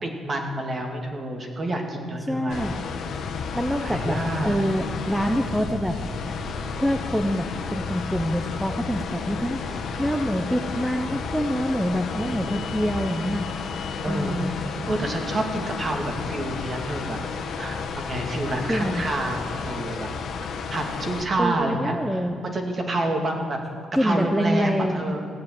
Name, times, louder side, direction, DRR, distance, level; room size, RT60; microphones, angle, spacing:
voice 1, 0.0-2.7 3.8-4.6 12.3-13.2 14.0-14.5 14.9-17.2 17.6-20.1 20.7-23.6 24.0-25.2, right 1 dB, 35° right, 2 dB, 2.3 m, -28 dB
voice 2, 2.3-2.8 3.3-4.2 4.4-6.0 6.8-13.5 14.1-14.5 18.7-19.0 21.4-22.4 24.0-25.2, equal, 5° right, 4 dB, 0.8 m, -26 dB
sound 1, 2.5-21.2, left 5 dB, 70° left, 1.3 m, -32 dB
15.5 x 7.3 x 9.0 m, 2.2 s
cardioid pair, 90°, 0 cm